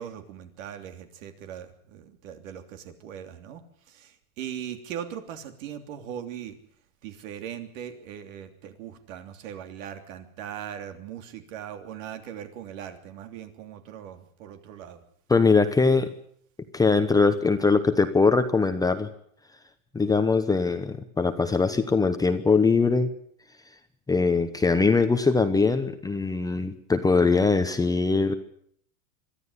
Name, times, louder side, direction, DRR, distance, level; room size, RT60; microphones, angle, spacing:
voice 1, 0.0-6.6 7.0-15.0, right 9 dB, 65° right, 8 dB, 3.2 m, -40 dB
voice 2, 15.3-16.1 16.7-19.1 19.9-23.1 24.1-28.3, left 4 dB, 10° left, 8 dB, 1.0 m, -22 dB
22.5 x 13.0 x 9.9 m, 0.65 s
supercardioid pair, 130°, 42 cm